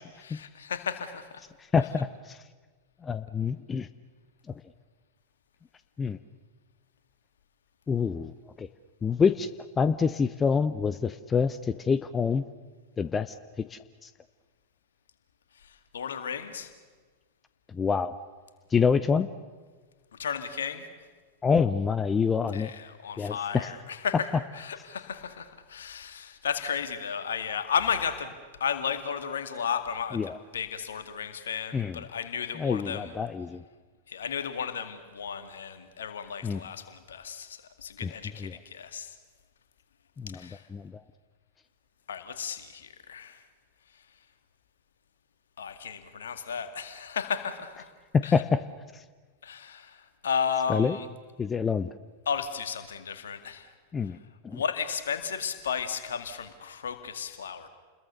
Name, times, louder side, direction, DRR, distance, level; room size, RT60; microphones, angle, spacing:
voice 1, 0.0-1.4 1.8-2.0 15.6-16.7 20.2-20.9 22.5-33.1 34.1-39.2 40.3-40.7 42.1-43.4 45.6-47.9 48.2-48.4 49.4-51.1 52.3-53.7 54.0-54.2 54.5-57.7, left 7 dB, 65° left, 9 dB, 2.0 m, -34 dB
voice 2, 1.7-2.4 3.0-3.9 6.0-6.2 7.9-8.7 9.0-9.5 9.8-12.4 13.0-14.1 17.7-18.1 18.7-19.3 21.4-22.7 23.2-23.7 30.1-30.4 31.7-32.0 32.6-33.6 36.4-36.6 38.0-38.1 38.4-38.5 40.2-40.4 40.7-40.9 48.1-48.6 48.9-49.0 50.7-51.0 51.4-51.9 53.9-54.2 54.4-54.6, left 5 dB, 20° left, 13 dB, 0.7 m, -26 dB
29.5 x 21.5 x 6.7 m, 1.4 s
figure-of-eight pair, 90°, 0 cm